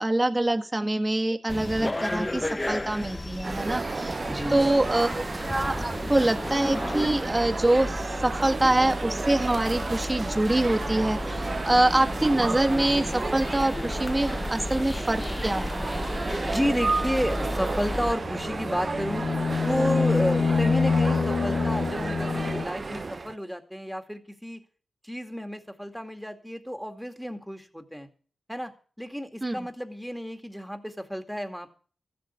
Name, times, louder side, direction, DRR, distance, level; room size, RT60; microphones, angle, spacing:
voice 1, 0.0-4.2 4.5-15.8 29.4-29.7, right 1 dB, 20° right, 6 dB, 1.7 m, -25 dB
sound 1, 1.5-18.1, left 1 dB, 20° left, 0.7 m, -33 dB
sound 2, 3.4-23.4, right 3 dB, 45° right, 0.6 m, -33 dB
voice 2, 4.3-4.7 16.5-19.3 19.6-24.6 25.0-28.1 28.5-28.7 29.0-31.7, equal, ahead, 6 dB, 2.3 m, -31 dB
sound 3, 18.2-22.7, left 5 dB, 65° left, 1.2 m, -26 dB
14.5 x 7.7 x 8.2 m, 0.42 s
cardioid pair, 65°, 0 cm